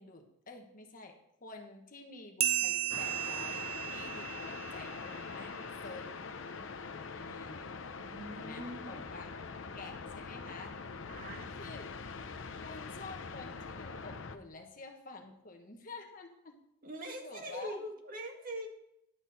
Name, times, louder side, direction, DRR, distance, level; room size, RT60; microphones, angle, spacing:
voice 1, 0.0-6.1 7.1-7.8 8.3-9.3 9.7-10.8 11.5-12.0 12.6-16.6 17.2-17.8, left 3 dB, 45° left, 3 dB, 1.4 m, -49 dB
sound 1, 2.4-5.4, right 12 dB, 30° right, 0.4 m, -35 dB
sound 2, 2.9-14.4, left 4 dB, 80° left, 0.7 m, -43 dB
voice 2, 7.9-9.1 11.1-11.5 16.8-18.7, right 1 dB, 45° right, 2 dB, 1.8 m, -43 dB
11.5 x 8.2 x 4.3 m, 0.77 s
head